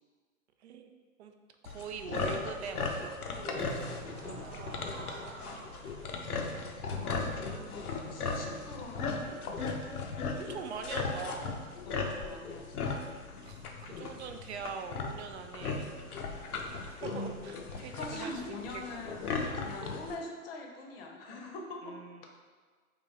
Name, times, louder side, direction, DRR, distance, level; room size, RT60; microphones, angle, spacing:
voice 1, 0.6-0.9 1.2-1.3 1.6-3.8 4.2-5.3 10.3-11.7 13.4-15.9 16.9-18.3 19.0-19.2 21.8-22.3, right 6 dB, 50° right, 6 dB, 0.4 m, -43 dB
sound 1, 1.7-20.2, left 4 dB, 85° left, 0.7 m, -37 dB
Crowd / Fireworks, 3.6-8.8, right 2 dB, 65° right, 0.9 m, -49 dB
voice 2, 6.9-9.8 11.9-13.0 18.0-22.0, left 2 dB, 40° left, 1 dB, 0.7 m, -44 dB
3.6 x 2.8 x 4.0 m, 1.5 s
hypercardioid pair, 125°, 43 cm